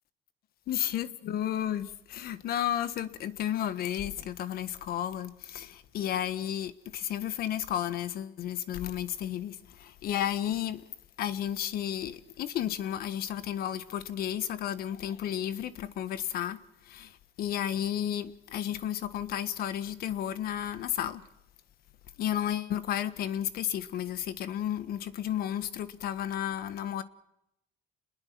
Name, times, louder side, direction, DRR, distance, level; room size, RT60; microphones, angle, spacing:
voice 1, 0.7-10.9 11.2-21.2 22.2-27.0, left 10 dB, 65° left, 1.5 m, -33 dB
28.0 x 21.0 x 6.1 m
cardioid pair, 130°, 17 cm